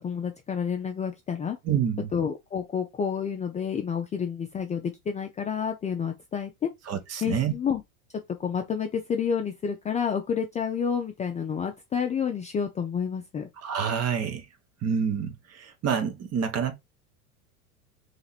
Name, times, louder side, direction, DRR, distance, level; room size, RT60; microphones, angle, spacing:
voice 1, 0.0-1.6 2.1-6.7 7.2-7.8 8.1-13.5, left 7 dB, 15° left, 0.4 m, -29 dB
voice 2, 1.6-2.1 6.9-7.5 13.6-14.4 14.8-16.7, right 7 dB, 35° right, 1.1 m, -27 dB
3.3 x 2.9 x 4.0 m
hypercardioid pair, 100°, 43 cm